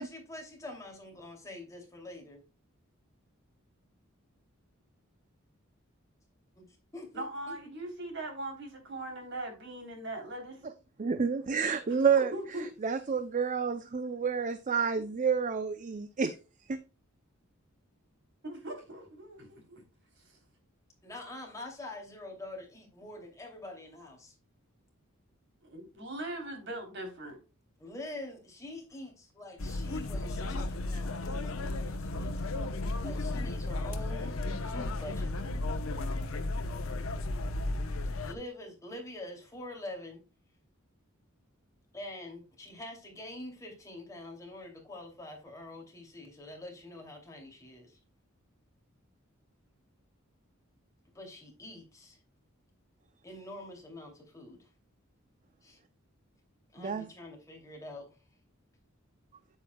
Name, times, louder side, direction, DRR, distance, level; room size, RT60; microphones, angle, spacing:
voice 1, 0.0-2.4 6.6-6.7 6.9-7.5 21.0-24.3 27.8-32.4 33.0-35.3 38.0-40.2 41.9-48.0 51.1-52.2 53.2-54.6 55.6-55.8 56.7-58.1, left 1 dB, 15° left, 2.7 m, -45 dB
voice 2, 7.1-10.6 11.9-12.7 18.4-19.8 20.2-20.4 25.6-27.4, right 1 dB, 60° right, 3.4 m, -40 dB
voice 3, 11.0-12.3 12.8-16.4 16.7-16.8 56.8-57.1, right 6 dB, 40° right, 0.5 m, -29 dB
sound 1, 29.6-38.3, left 2 dB, 75° left, 0.8 m, -34 dB
8.7 x 8.3 x 2.3 m
head